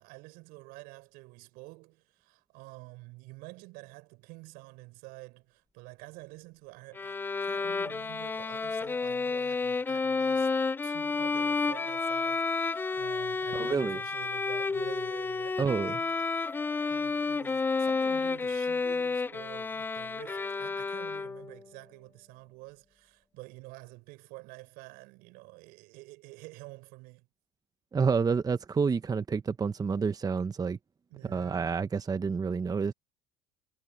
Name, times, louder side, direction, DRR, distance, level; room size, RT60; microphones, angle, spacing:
voice 1, 0.0-10.5 10.8-16.2 16.9-27.3 31.1-31.7, right 24 dB, 70° right, 5.1 m, -49 dB
Bowed string instrument, 6.9-21.6, left 4 dB, 10° left, 0.3 m, -31 dB
voice 2, 13.5-14.0 15.6-16.0 27.9-30.8 31.2-32.9, right 5 dB, 25° right, 0.9 m, -29 dB
supercardioid pair, 85°, 16 cm